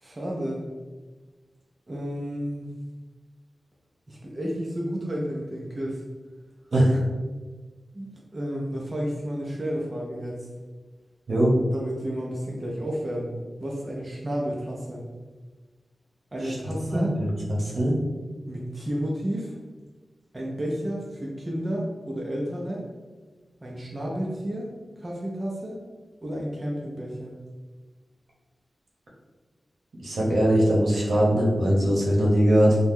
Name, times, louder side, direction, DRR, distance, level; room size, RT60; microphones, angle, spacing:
voice 1, 0.0-0.7 1.9-2.7 4.1-6.0 7.9-10.5 11.7-13.3 13.6-15.0 16.3-17.2 18.5-19.5 20.3-22.8 23.6-24.7 25.0-25.8 26.2-27.4, equal, 25° right, -3 dB, 0.4 m, -31 dB
voice 2, 16.9-17.9 30.0-32.8, equal, 70° right, -4 dB, 0.8 m, -21 dB
2.8 x 2.1 x 3.5 m, 1.3 s
wide cardioid pair, 130°, 0 cm